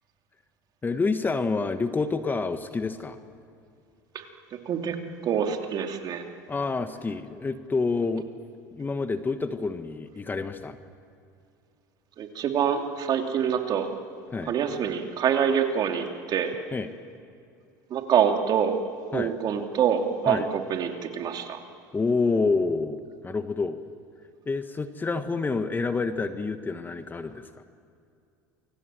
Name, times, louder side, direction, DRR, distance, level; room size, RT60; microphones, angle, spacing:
voice 1, 0.8-3.2 6.5-8.3 8.7-10.8 14.3-14.5 16.7-16.9 19.1-19.3 20.3-20.5 21.9-23.8 24.5-27.6, left 4 dB, 20° left, 9 dB, 1.4 m, -28 dB
voice 2, 4.7-5.0 5.2-6.2 12.2-13.9 14.5-16.5 17.9-18.8 19.1-21.6, right 8 dB, 50° right, 4 dB, 2.9 m, -25 dB
28.5 x 24.5 x 7.7 m, 2.5 s
hypercardioid pair, 90°, 9 cm